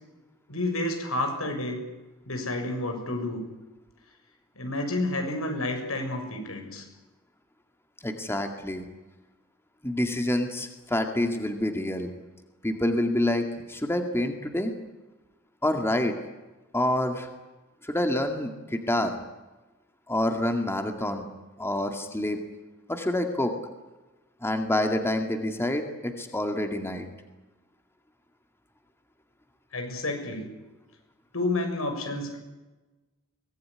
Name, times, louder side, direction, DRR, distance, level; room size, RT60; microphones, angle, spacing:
voice 1, 0.5-1.8 2.3-3.4 4.5-6.8 29.7-30.5 31.3-32.4, left 2 dB, 85° left, 4 dB, 6.7 m, -30 dB
voice 2, 8.0-8.9 9.8-12.1 12.6-14.8 15.6-16.2 16.7-17.3 17.8-19.1 20.1-21.3 21.6-22.4 22.9-23.6 24.4-27.1, left 1 dB, 10° left, 5 dB, 2.2 m, -27 dB
23.5 x 19.0 x 9.8 m, 1.1 s
head